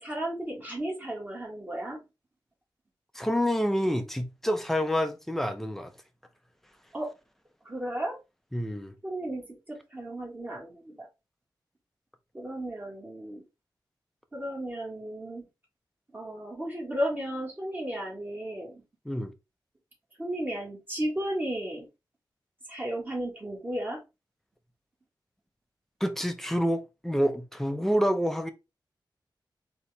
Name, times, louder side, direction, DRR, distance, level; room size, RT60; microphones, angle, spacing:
voice 1, 0.0-2.0 6.9-7.1 7.6-8.2 9.0-11.1 12.3-13.4 14.3-15.4 16.1-18.8 20.2-21.9 22.7-24.0, right 1 dB, 25° right, 1.5 m, -34 dB
voice 2, 3.1-5.9 8.5-8.9 19.1-19.3 26.0-28.5, equal, 5° left, 0.6 m, -28 dB
4.2 x 3.0 x 3.3 m
wide cardioid pair, 145°, 8 cm